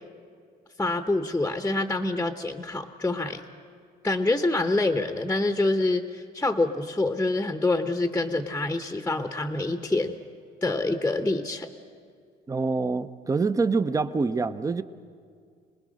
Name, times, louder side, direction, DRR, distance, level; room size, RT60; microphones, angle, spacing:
voice 1, 0.8-3.4 4.0-10.2 10.6-11.7, left 2 dB, 10° left, 0.9 m, -26 dB
voice 2, 12.5-14.8, right 4 dB, 20° right, 0.7 m, -25 dB
26.5 x 20.0 x 6.4 m
cardioid pair, 110°, 17 cm